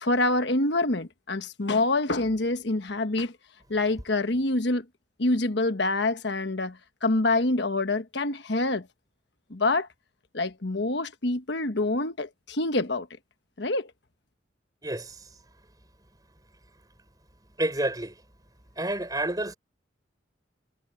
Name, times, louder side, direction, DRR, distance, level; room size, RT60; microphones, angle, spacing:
voice 1, 0.0-3.3 3.7-4.8 5.2-8.9 9.5-9.9 10.3-13.1 13.6-13.9, left 2 dB, 65° left, 1.3 m, -26 dB
voice 2, 14.8-15.2 17.6-18.2 18.8-19.5, right 1 dB, 20° right, 6.0 m, -29 dB
head